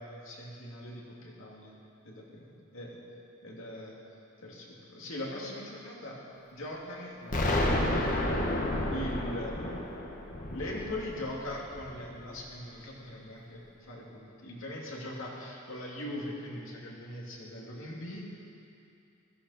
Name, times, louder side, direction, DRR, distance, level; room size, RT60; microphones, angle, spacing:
voice 1, 0.0-1.7 2.0-3.0 3.4-3.9 4.4-6.2 6.5-7.9 8.9-9.6 10.5-18.2, left 1 dB, 70° left, -3 dB, 2.6 m, -41 dB
Explosion, 7.3-12.2, left 1 dB, 40° left, 1.4 m, -31 dB
15.5 x 14.0 x 4.3 m, 2.7 s
head